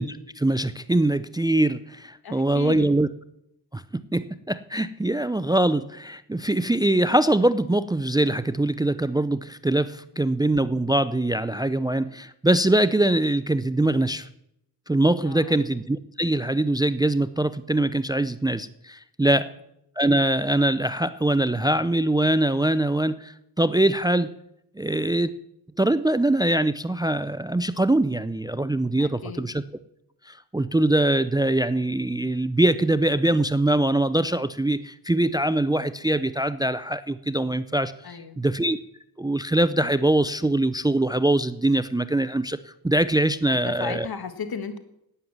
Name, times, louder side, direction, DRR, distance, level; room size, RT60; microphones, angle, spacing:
voice 1, 0.0-3.1 3.7-3.8 4.1-14.3 14.9-19.5 20.0-24.3 24.8-25.3 25.8-29.6 30.3-37.9 38.4-38.8 39.2-42.6 42.8-44.1, right 1 dB, 10° right, 15 dB, 0.5 m, -23 dB
voice 2, 2.2-3.0 15.2-15.6 19.3-19.5 29.0-29.4 38.0-38.4 43.5-44.8, left 6 dB, 60° left, 10 dB, 1.7 m, -35 dB
11.5 x 9.4 x 7.4 m, 0.78 s
cardioid pair, 65°, 41 cm